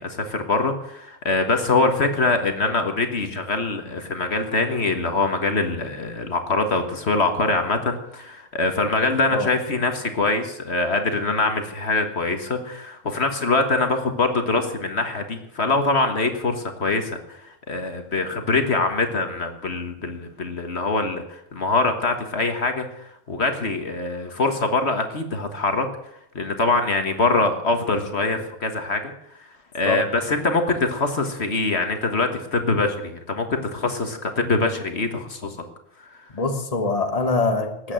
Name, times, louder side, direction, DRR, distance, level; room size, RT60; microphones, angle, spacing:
voice 1, 0.0-25.9 26.3-29.1 29.4-29.5 29.7-35.6 36.1-36.2, left 3 dB, 55° left, 6 dB, 1.8 m, -23 dB
voice 2, 36.3-37.9, left 3 dB, 30° left, 5 dB, 1.5 m, -23 dB
19.5 x 8.4 x 7.7 m, 0.81 s
omnidirectional pair, 1.3 m